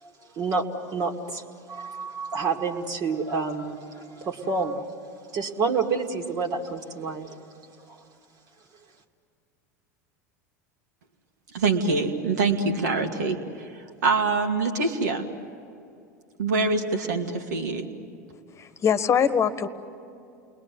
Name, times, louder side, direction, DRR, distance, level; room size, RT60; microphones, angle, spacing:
voice 1, 0.0-4.8 5.3-7.4 7.9-8.0, right 4 dB, 45° right, 3 dB, 2.3 m, -29 dB
voice 2, 11.5-13.7 14.0-15.2 16.4-17.9, right 4 dB, 75° right, 5 dB, 2.3 m, -24 dB
voice 3, 18.6-19.7, left 7 dB, 30° left, 12 dB, 1.4 m, -22 dB
29.5 x 21.0 x 9.5 m, 2.5 s
hypercardioid pair, 85°, 9 cm